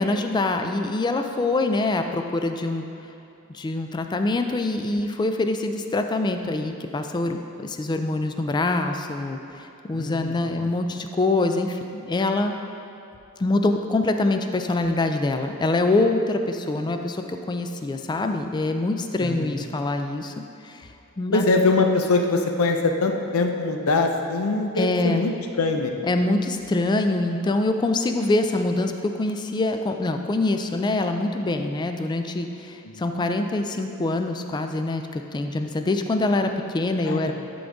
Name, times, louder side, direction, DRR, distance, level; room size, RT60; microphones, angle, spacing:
voice 1, 0.0-2.9 3.5-12.5 13.4-20.3 20.6-20.9 21.2-21.5 24.8-25.3 26.0-37.3, left 2 dB, 20° left, 6 dB, 0.3 m, -24 dB
voice 2, 9.9-10.7 19.2-19.6 21.3-25.9 32.8-33.0 37.1-37.3, left 3 dB, 75° left, 4 dB, 0.6 m, -23 dB
11.0 x 3.9 x 3.5 m, 2.7 s
head